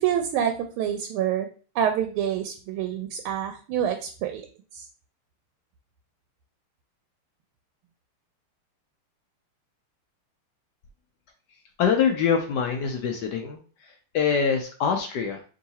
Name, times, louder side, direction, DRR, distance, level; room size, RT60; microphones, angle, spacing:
voice 1, 0.0-1.5 1.7-4.5 4.7-4.8, right 9 dB, 80° right, 5 dB, 1.4 m, -27 dB
voice 2, 11.8-13.6 14.1-15.4, left 6 dB, 75° left, 3 dB, 0.9 m, -24 dB
3.7 x 2.8 x 4.1 m, 0.39 s
omnidirectional pair, 2.4 m